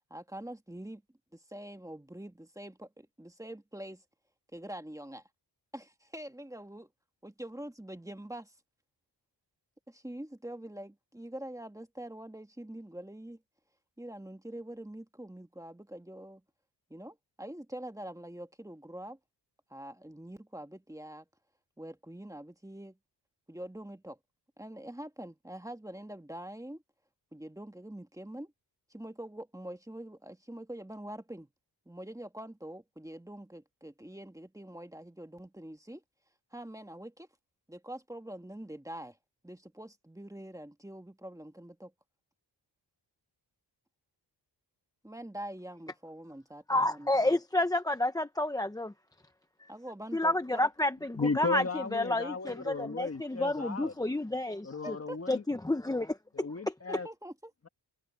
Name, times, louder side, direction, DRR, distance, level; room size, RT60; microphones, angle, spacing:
voice 1, 0.1-1.0 1.3-4.0 4.5-5.2 5.7-6.9 7.2-8.5 9.9-13.4 14.0-16.4 16.9-19.2 19.7-21.2 21.8-23.0 23.5-24.2 24.6-26.8 27.3-28.5 28.9-31.5 31.8-36.0 36.5-37.3 37.7-39.2 39.4-41.9 45.0-47.1 49.7-50.6 54.8-55.2 56.9-57.5, right 1 dB, 5° right, 1.7 m, -44 dB
voice 2, 46.7-48.9 49.6-49.7 50.1-54.9 55.3-56.2, left 1 dB, 10° left, 0.7 m, -30 dB
voice 3, 51.1-53.9 54.6-55.4 56.3-57.1, left 3 dB, 35° left, 1.9 m, -35 dB
wide cardioid pair, 110°, 43 cm